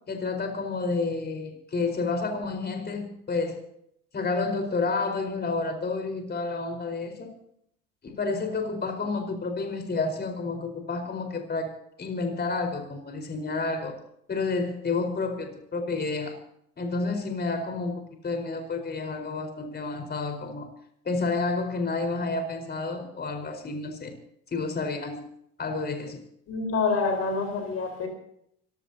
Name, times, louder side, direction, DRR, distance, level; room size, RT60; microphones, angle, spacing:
voice 1, 0.1-3.6 4.1-7.4 8.0-11.7 12.0-14.0 14.3-16.4 16.8-20.7 21.0-24.1 24.5-25.3 25.6-26.2, left 3 dB, 35° left, 5 dB, 4.7 m, -30 dB
voice 2, 26.5-28.1, left 4 dB, 55° left, 4 dB, 4.4 m, -27 dB
25.5 x 16.5 x 2.9 m, 0.71 s
supercardioid pair, 90°, 30 cm